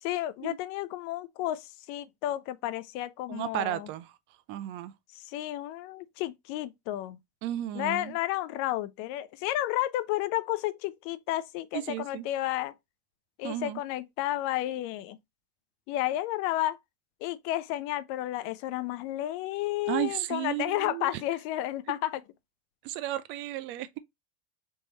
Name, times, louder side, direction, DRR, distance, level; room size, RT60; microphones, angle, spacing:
voice 1, 0.0-3.9 5.1-7.2 7.7-12.7 13.4-15.2 15.9-16.8 17.2-22.2, left 14 dB, 45° left, 0.5 m, -32 dB
voice 2, 3.3-4.2 4.5-4.9 7.4-8.2 11.7-12.3 13.4-13.8 19.9-21.2 22.8-24.0, right 13 dB, 40° right, 0.4 m, -33 dB
3.5 x 3.0 x 4.0 m
hypercardioid pair, 115°, 31 cm